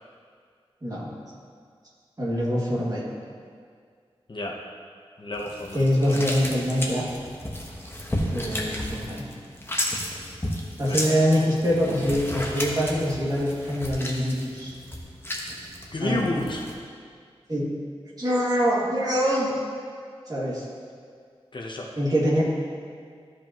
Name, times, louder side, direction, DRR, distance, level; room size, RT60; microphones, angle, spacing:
voice 1, 0.8-1.1 2.2-3.0 5.7-7.1 8.3-9.2 10.8-14.7 16.0-16.2 17.5-17.8 18.2-19.5 20.3-20.6 21.9-22.4, equal, 40° right, -7 dB, 2.1 m, -24 dB
voice 2, 5.2-6.4 10.8-11.2 15.9-16.6 21.5-21.9, left 2 dB, 50° left, -1 dB, 0.9 m, -31 dB
sound 1, 5.3-16.7, left 1 dB, 20° left, 1.1 m, -33 dB
13.5 x 5.0 x 3.0 m, 2.1 s
wide cardioid pair, 70°, 10 cm